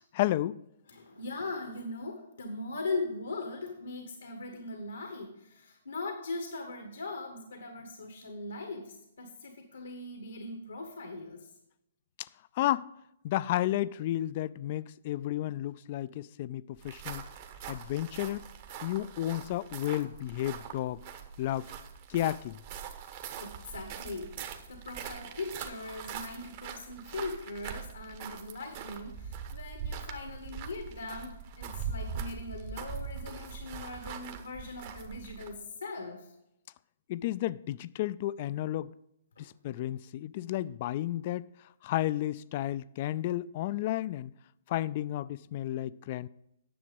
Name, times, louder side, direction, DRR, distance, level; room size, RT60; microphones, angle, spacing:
voice 1, 0.1-0.6 12.6-12.9 13.2-17.2 17.7-18.5 18.8-21.0 21.4-21.7 22.1-22.6 37.1-38.9 39.4-41.5 41.8-44.3 44.7-46.3, left 14 dB, 45° left, 0.3 m, -32 dB
voice 2, 0.9-11.5 23.2-24.4 24.7-36.3 39.4-39.5, left 3 dB, 85° left, 1.4 m, -40 dB
sound 1, 16.8-35.6, right 6 dB, 45° right, 1.1 m, -42 dB
10.0 x 6.9 x 5.3 m
hypercardioid pair, 135°, 0 cm